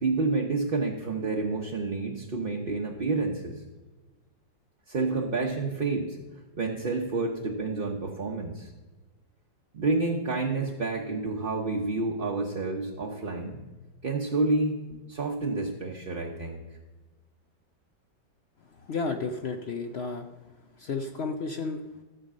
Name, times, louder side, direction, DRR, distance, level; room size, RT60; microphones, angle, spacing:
voice 1, 0.0-3.6 4.9-6.2 6.6-8.7 9.7-13.6 14.0-16.8, right 3 dB, 40° right, -1 dB, 1.0 m, -29 dB
voice 2, 18.7-20.3 20.8-22.0, left 4 dB, 65° left, 6 dB, 0.6 m, -32 dB
14.0 x 5.2 x 7.4 m, 1.2 s
omnidirectional pair, 1.9 m